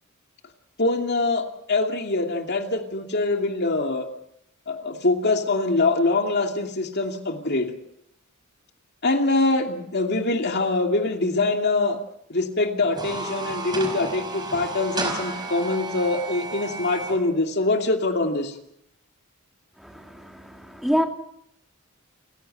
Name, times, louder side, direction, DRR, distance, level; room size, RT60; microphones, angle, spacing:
voice 1, 0.8-4.1 4.7-7.7 9.0-12.0 12.3-18.6, left 2 dB, 50° left, 4 dB, 2.6 m, -24 dB
sound 1, 12.8-17.2, right 3 dB, 20° right, 5.2 m, -32 dB
voice 2, 19.8-21.0, equal, ahead, 3 dB, 2.5 m, -27 dB
29.5 x 16.0 x 7.9 m, 0.77 s
head